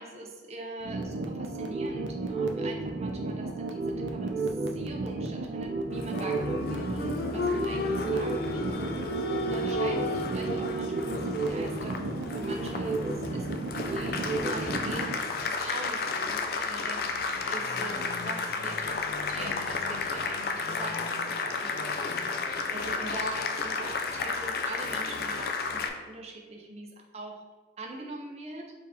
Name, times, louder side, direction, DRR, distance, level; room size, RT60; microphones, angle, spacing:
voice 1, 0.0-13.5 13.9-15.1 15.4-27.4 27.8-28.7, right 2 dB, 35° right, 2 dB, 0.5 m, -42 dB
sound 1, 0.8-15.2, right 3 dB, 85° right, 0.5 m, -32 dB
Applause, 5.9-25.9, left 3 dB, 55° left, 0.3 m, -32 dB
4.1 x 3.7 x 2.7 m, 1.3 s
head